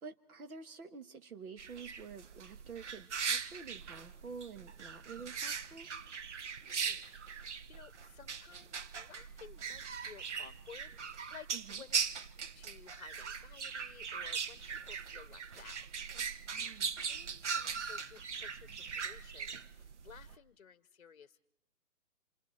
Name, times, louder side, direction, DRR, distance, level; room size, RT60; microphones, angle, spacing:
voice 1, 0.0-5.9 11.5-11.8 16.4-17.0, right 5 dB, 65° right, 10 dB, 1.9 m, -49 dB
sound 1, 1.6-20.3, right 6 dB, 50° right, 0.9 m, -40 dB
voice 2, 6.7-12.0 12.3-15.8 17.1-21.4, left 7 dB, 45° left, 13 dB, 0.9 m, -56 dB
29.0 x 27.5 x 4.4 m, 0.66 s
hypercardioid pair, 165°, 46 cm